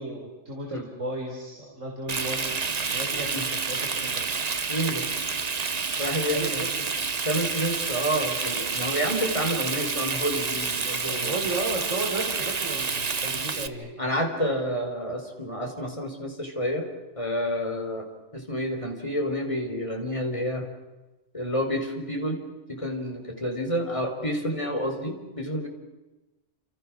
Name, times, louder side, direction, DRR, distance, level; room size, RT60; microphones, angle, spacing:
voice 1, 0.0-2.6 2.9-4.3 6.2-7.0 11.1-14.0, right 2 dB, 85° right, -1 dB, 4.5 m, -34 dB
Frying (food), 2.1-13.7, right 5 dB, 35° right, 1.0 m, -29 dB
voice 2, 4.7-5.1 6.0-6.7 7.2-11.3 14.0-16.9 17.2-18.1 18.3-20.7 21.3-22.4 22.7-25.7, equal, 25° left, 2 dB, 4.5 m, -29 dB
29.0 x 27.5 x 6.3 m, 1.1 s
omnidirectional pair, 1.3 m